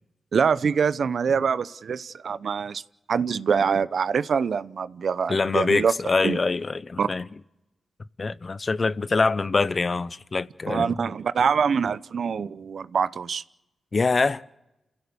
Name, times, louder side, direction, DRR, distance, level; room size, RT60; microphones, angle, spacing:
voice 1, 0.3-2.8 3.1-5.9 6.2-6.4 7.0-7.1 10.7-13.4, right 6 dB, 65° right, 0.7 m, -24 dB
voice 2, 5.3-7.3 8.2-10.9 13.9-14.4, left 4 dB, 40° left, 0.7 m, -24 dB
29.5 x 16.0 x 7.0 m
cardioid pair, 90°, 0 cm